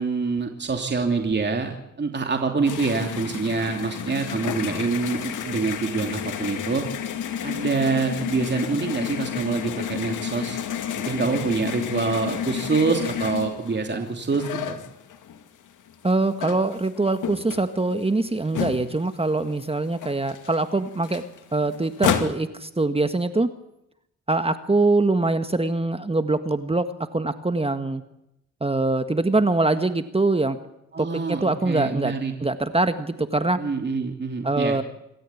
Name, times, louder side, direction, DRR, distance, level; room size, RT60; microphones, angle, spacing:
voice 1, 0.0-6.8 7.4-10.6 10.9-14.8 30.9-32.3 33.6-34.8, right 4 dB, 35° right, 3 dB, 2.9 m, -26 dB
sound 1, 2.6-15.5 15.9-19.3 19.6-19.7 19.9-22.3, left 9 dB, 75° left, 2.4 m, -31 dB
voice 2, 16.0-21.2 21.5-23.5 24.3-28.0 28.6-30.6 31.0-32.1 32.4-33.6 34.4-34.8, right 2 dB, 20° right, 9 dB, 1.6 m, -23 dB
27.0 x 13.5 x 8.5 m, 0.85 s
cardioid pair, 65°, 31 cm